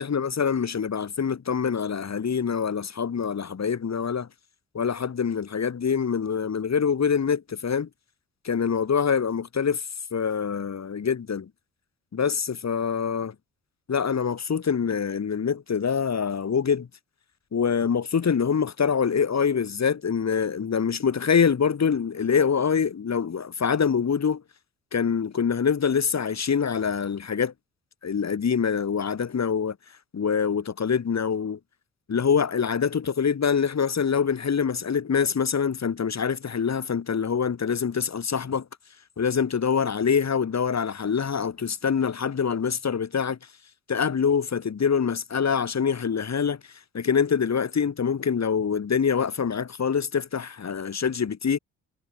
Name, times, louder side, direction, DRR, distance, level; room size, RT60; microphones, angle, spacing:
voice 1, 0.0-4.3 4.7-7.9 8.4-9.8 10.1-11.5 12.1-13.4 13.9-16.9 17.5-24.4 24.9-27.5 28.0-29.8 30.1-31.6 32.1-38.7 39.2-43.4 43.9-46.6 46.9-51.6, left 6 dB, 45° left, 3.7 m, -25 dB
hypercardioid pair, 50°, 37 cm